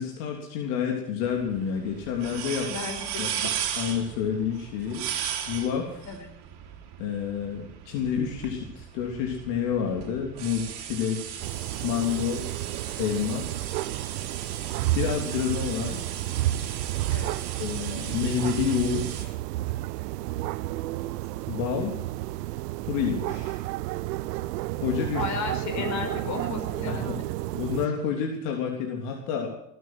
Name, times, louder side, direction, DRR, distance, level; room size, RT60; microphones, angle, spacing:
voice 1, 0.0-2.7 3.2-5.0 5.4-6.0 7.0-11.4 11.8-12.4 13.0-13.5 15.0-16.0 17.6-19.3 21.5-21.9 22.9-23.6 24.8-25.2 25.8-26.0 26.9-27.2 27.5-29.5, left 7 dB, 65° left, 1 dB, 3.3 m, -29 dB
sound 1, 1.2-19.2, right 9 dB, 50° right, 3.4 m, -37 dB
voice 2, 2.6-3.4 6.1-6.2 17.1-17.4 25.0-27.1, left 4 dB, 35° left, 4 dB, 4.8 m, -34 dB
sound 2, 11.4-27.9, right 16 dB, 75° right, 0.8 m, -31 dB
19.5 x 9.3 x 7.7 m, 0.73 s
hypercardioid pair, 105°, 49 cm